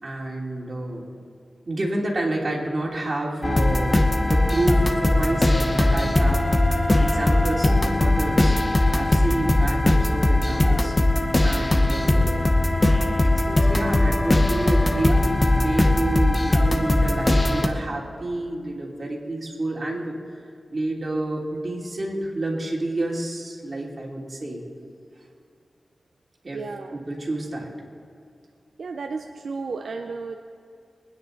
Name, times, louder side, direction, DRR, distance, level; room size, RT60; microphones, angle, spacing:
voice 1, 0.0-1.1 1.7-8.6 8.9-12.5 13.2-15.2 15.5-20.1 20.7-24.7 26.4-26.6 26.9-27.7, right 2 dB, 45° right, -2 dB, 2.9 m, -29 dB
sound 1, 3.4-17.7, left 1 dB, 30° left, 1.0 m, -20 dB
voice 2, 26.5-27.0 28.8-30.4, right 4 dB, 85° right, 5 dB, 0.6 m, -33 dB
23.5 x 9.7 x 3.9 m, 2.4 s
wide cardioid pair, 75°, 0 cm